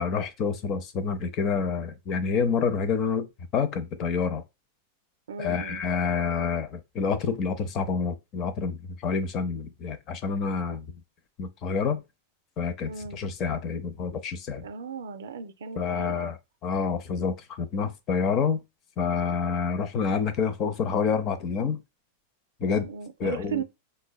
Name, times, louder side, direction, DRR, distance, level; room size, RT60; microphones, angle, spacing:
voice 1, 0.0-3.3 3.5-4.4 5.4-10.9 11.4-12.0 12.6-14.6 15.8-16.4 16.6-18.6 19.0-21.8 22.6-22.8 23.2-23.6, left 5 dB, 40° left, 0.5 m, -28 dB
voice 2, 5.3-5.8 12.8-13.2 14.6-16.4 22.6-23.6, right 6 dB, 90° right, 0.4 m, -36 dB
4.6 x 2.1 x 2.2 m
supercardioid pair, 130°, 0 cm